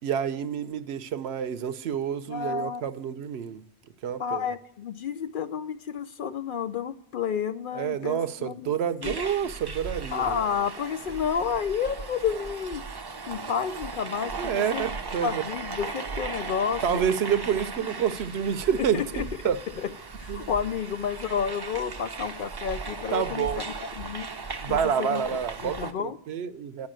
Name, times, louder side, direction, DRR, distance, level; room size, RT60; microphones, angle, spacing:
voice 1, 0.0-3.6 4.0-4.5 7.7-10.4 14.4-15.4 16.8-19.6 20.3-20.5 23.1-23.6 24.6-26.9, right 8 dB, 75° right, 0.9 m, -28 dB
voice 2, 2.3-2.9 4.2-8.7 9.0-9.3 10.1-12.8 13.3-14.8 15.2-17.0 17.8-17.9 18.8-19.3 19.7-19.9 20.2-24.3 24.7-26.2, left 7 dB, 60° left, 0.6 m, -31 dB
sound 1, 9.0-25.9, right 4 dB, 30° right, 0.5 m, -37 dB
10.5 x 5.8 x 8.8 m
omnidirectional pair, 1.1 m